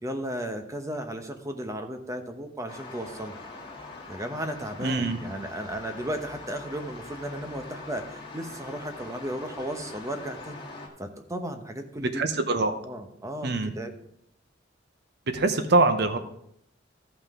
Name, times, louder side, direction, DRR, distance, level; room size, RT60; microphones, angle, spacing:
voice 1, 0.0-3.3 4.1-10.6 11.0-12.2 12.8-13.9, right 1 dB, 15° right, 6 dB, 0.9 m, -35 dB
sound 1, 2.7-10.9, left 3 dB, 25° left, 1.8 m, -43 dB
voice 2, 4.8-5.2 12.0-12.7 13.4-13.7 15.3-16.2, right 3 dB, 60° right, 9 dB, 0.8 m, -24 dB
14.0 x 5.7 x 3.6 m, 0.73 s
head